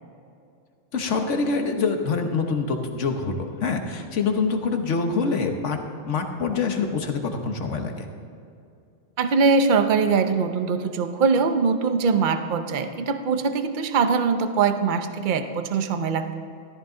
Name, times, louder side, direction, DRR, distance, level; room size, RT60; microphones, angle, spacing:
voice 1, 0.9-5.8 6.1-8.1, left 4 dB, 75° left, 5 dB, 1.4 m, -25 dB
voice 2, 9.2-16.3, right 5 dB, 45° right, 8 dB, 0.8 m, -22 dB
14.0 x 13.0 x 3.8 m, 2.5 s
omnidirectional pair, 1.3 m